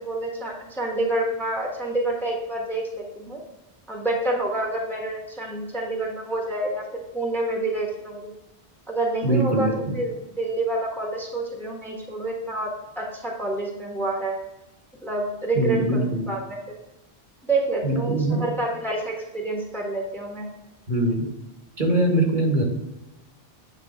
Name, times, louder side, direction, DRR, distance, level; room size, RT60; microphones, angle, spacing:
voice 1, 0.0-3.4 3.9-8.3 8.9-12.7 13.0-14.4 15.0-16.6 17.4-20.5, right 2 dB, ahead, -1 dB, 1.3 m, -28 dB
voice 2, 9.2-10.0 15.6-16.2 17.8-18.4 20.9-21.3 21.8-22.6, right 1 dB, 50° right, 0 dB, 1.7 m, -22 dB
9.2 x 3.5 x 4.3 m, 0.98 s
omnidirectional pair, 1.0 m